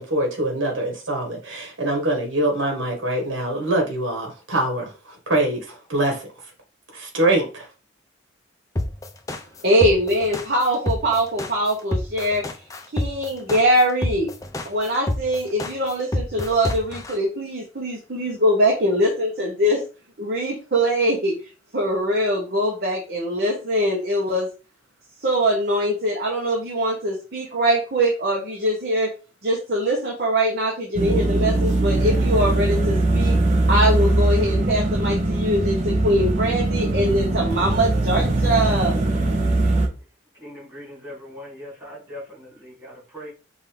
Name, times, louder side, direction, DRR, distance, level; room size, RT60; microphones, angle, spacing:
voice 1, 0.0-6.3 6.9-7.7, right 1 dB, 75° right, 1.6 m, -24 dB
sound 1, 8.8-17.1, left 1 dB, 15° left, 0.4 m, -27 dB
voice 2, 9.6-12.4 12.9-14.3 14.6-19.8 20.2-21.3 21.7-24.5 25.2-29.1 29.4-33.3 33.7-38.9, equal, 50° right, 1.1 m, -22 dB
sound 2, 30.9-39.9, right 2 dB, 35° right, 0.8 m, -21 dB
voice 3, 40.3-43.3, left 1 dB, 15° right, 2.7 m, -40 dB
5.4 x 2.7 x 3.3 m
head